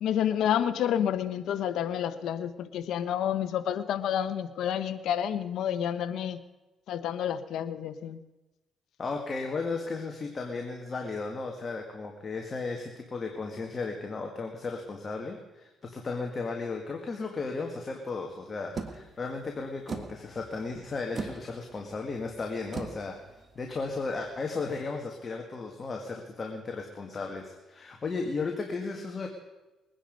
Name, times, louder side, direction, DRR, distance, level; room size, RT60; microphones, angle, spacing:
voice 1, 0.0-6.4 6.9-8.2, left 9 dB, 80° left, 13 dB, 0.9 m, -29 dB
voice 2, 9.0-23.2 23.6-29.3, left 4 dB, 35° left, 2 dB, 1.8 m, -35 dB
sound 1, 18.7-24.3, right 4 dB, 40° right, 1.8 m, -41 dB
22.0 x 10.0 x 5.3 m, 1.1 s
cardioid pair, 90°, 0 cm